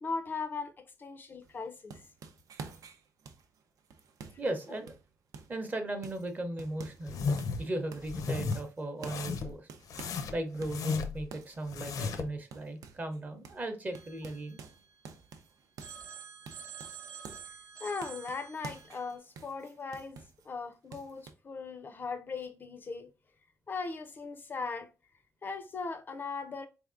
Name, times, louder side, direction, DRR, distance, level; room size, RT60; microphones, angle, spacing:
voice 1, 0.0-2.0 17.8-23.1 23.7-24.9 25.4-26.7, left 4 dB, 35° left, 0.4 m, -39 dB
sound 1, 1.4-5.6 6.0-7.1 7.4-8.2 8.5-10.3 10.6-13.2 13.4-13.7 14.0-17.5 18.0-20.5 20.9-21.3, right 5 dB, 90° right, 0.5 m, -50 dB
voice 2, 4.4-4.9 5.5-7.2 7.6-9.7 10.3-14.6, right 1 dB, 30° right, 0.7 m, -37 dB
sound 2, 7.1-7.7 8.0-8.6 9.0-9.6 9.9-11.2 11.6-12.3, left 5 dB, 90° left, 0.6 m, -34 dB
Telephone, 13.9-15.3 15.8-19.2, right 7 dB, 75° right, 0.9 m, -49 dB
4.1 x 3.5 x 2.4 m
wide cardioid pair, 165°, 6 cm